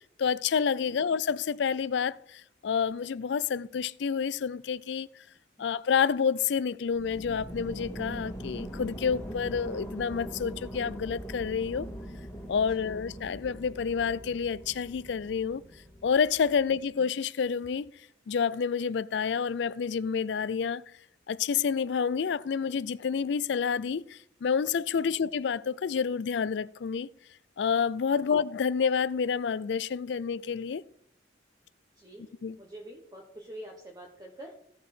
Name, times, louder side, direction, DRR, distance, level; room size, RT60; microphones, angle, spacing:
voice 1, 0.2-5.1 5.6-11.9 12.5-15.6 16.0-17.9 18.3-20.8 21.3-27.1 27.6-30.8 32.4-32.6, left 6 dB, 70° left, 0.4 m, -29 dB
sound 1, 6.9-16.8, equal, 15° left, 2.0 m, -42 dB
voice 2, 32.0-32.3 32.6-34.6, right 1 dB, 20° right, 1.2 m, -46 dB
15.5 x 5.5 x 4.3 m
head